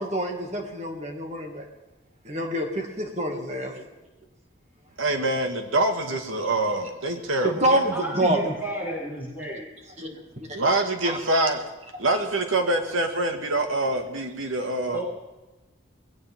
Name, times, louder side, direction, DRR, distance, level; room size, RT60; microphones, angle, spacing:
voice 1, 0.0-1.7 2.2-3.7 7.4-8.4 10.0-10.7 11.1-11.2, right 1 dB, 35° right, 2 dB, 2.3 m, -27 dB
voice 2, 5.0-7.6 10.5-11.6 12.0-15.0, right 2 dB, 85° right, 5 dB, 2.0 m, -25 dB
voice 3, 7.9-9.6 14.9-15.0, equal, 10° right, -7 dB, 6.9 m, -32 dB
20.5 x 17.0 x 3.8 m, 1.1 s
head